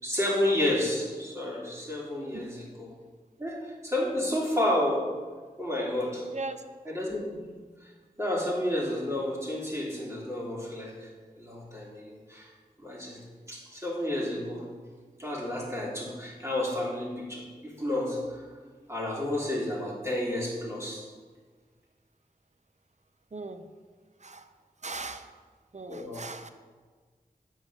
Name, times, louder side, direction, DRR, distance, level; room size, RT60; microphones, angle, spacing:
voice 1, 0.0-2.9 3.4-5.1 5.6-6.3 6.8-7.5 7.8-7.9 8.2-12.5 12.8-13.2 13.5-14.7 15.2-18.5 18.9-21.0 25.9-26.3, left 1 dB, 15° right, -4 dB, 2.8 m, -31 dB
voice 2, 6.3-6.6 23.3-23.6 24.2-24.5 24.8-25.3 25.7-26.5, right 3 dB, 45° right, 9 dB, 0.7 m, -38 dB
7.8 x 5.3 x 6.1 m, 1.5 s
wide cardioid pair, 50°, 16 cm